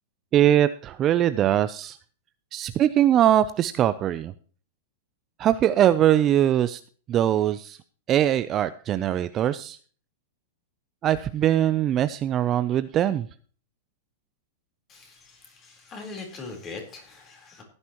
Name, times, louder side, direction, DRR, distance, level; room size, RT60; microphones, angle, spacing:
voice 1, 0.3-2.0 2.5-4.3 5.4-6.8 7.1-7.8 8.1-9.8 11.0-13.3, right 11 dB, 25° right, 13 dB, 0.5 m, -22 dB
voice 2, 14.9-17.6, left 3 dB, 20° left, 3 dB, 3.8 m, -41 dB
16.0 x 9.8 x 3.0 m, 0.42 s
supercardioid pair, 155°, 0 cm